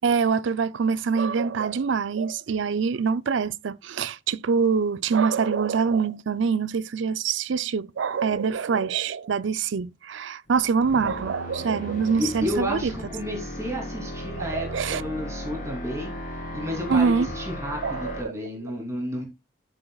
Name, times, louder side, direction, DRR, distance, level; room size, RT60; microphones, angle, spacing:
voice 1, 0.0-12.9 14.4-15.0 16.9-17.3 17.8-18.3, right 5 dB, 80° right, 0.5 m, -25 dB
sound 1, 10.5-18.2, left 1 dB, 45° left, 2.5 m, -36 dB
voice 2, 12.2-16.2 16.5-19.2, equal, 15° right, 3.0 m, -31 dB
13.0 x 7.8 x 2.3 m
head